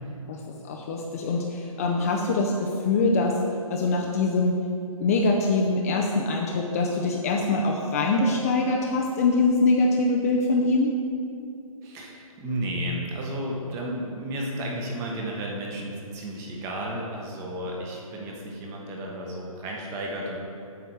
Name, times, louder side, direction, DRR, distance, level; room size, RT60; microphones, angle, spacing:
voice 1, 0.3-3.4 3.7-4.6 5.0-10.9, left 3 dB, 25° left, 0 dB, 0.5 m, -23 dB
voice 2, 11.8-20.4, right 1 dB, 15° right, -1 dB, 1.0 m, -33 dB
8.3 x 6.8 x 4.6 m, 2.6 s
hypercardioid pair, 150°, 18 cm